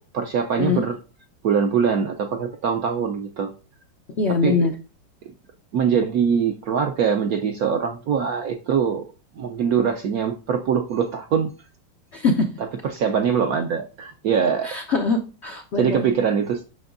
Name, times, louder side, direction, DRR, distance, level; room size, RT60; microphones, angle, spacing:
voice 1, 0.1-1.0 1.4-3.5 4.4-4.6 5.7-9.1 9.4-11.5 12.8-14.8 15.8-16.6, right 7 dB, 70° right, 5 dB, 0.9 m, -23 dB
voice 2, 4.2-4.7 12.1-12.5 14.6-16.1, left 4 dB, 80° left, 4 dB, 0.6 m, -22 dB
7.8 x 6.0 x 2.5 m, 0.34 s
omnidirectional pair, 2.1 m